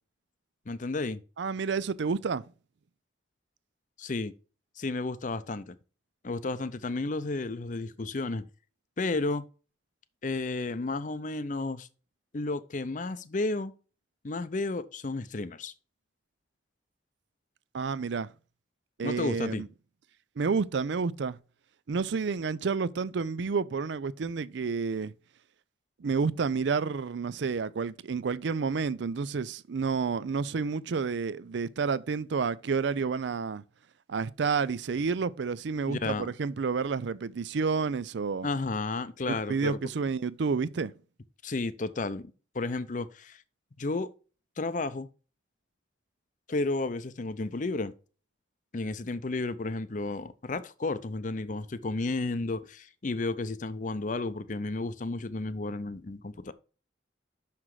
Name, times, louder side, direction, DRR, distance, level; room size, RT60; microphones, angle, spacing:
voice 1, 0.7-1.2 4.0-4.3 4.8-5.8 6.2-8.5 9.0-9.4 10.2-11.9 12.3-13.7 14.2-15.7 19.0-19.6 35.9-36.3 38.4-39.8 41.4-43.4 43.8-44.1 44.6-45.1 46.5-47.9 48.7-56.5, left 3 dB, 40° left, 0.6 m, -32 dB
voice 2, 1.4-2.5 17.7-18.3 19.0-19.7 20.4-21.4 21.9-25.1 26.0-33.6 34.1-38.5 39.2-40.9, right 5 dB, 70° right, 0.4 m, -30 dB
6.1 x 5.9 x 4.8 m
head